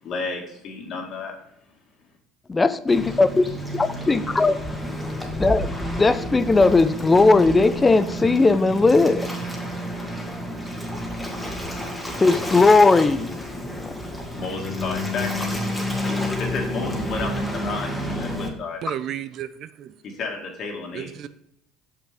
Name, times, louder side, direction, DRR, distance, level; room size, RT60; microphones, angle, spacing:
voice 1, 0.0-1.3 14.4-15.5 16.4-18.8 20.0-21.1, left 4 dB, 50° left, 2.0 m, -32 dB
voice 2, 2.5-3.4 3.7-4.6 5.4-9.4 12.2-14.0, left 3 dB, 20° left, 0.6 m, -18 dB
Waves surf, 2.9-18.5, equal, 5° left, 1.9 m, -30 dB
voice 3, 18.8-20.0 20.9-21.3, right 11 dB, 55° right, 0.5 m, -33 dB
6.6 x 6.0 x 3.4 m
hypercardioid pair, 70°, 0 cm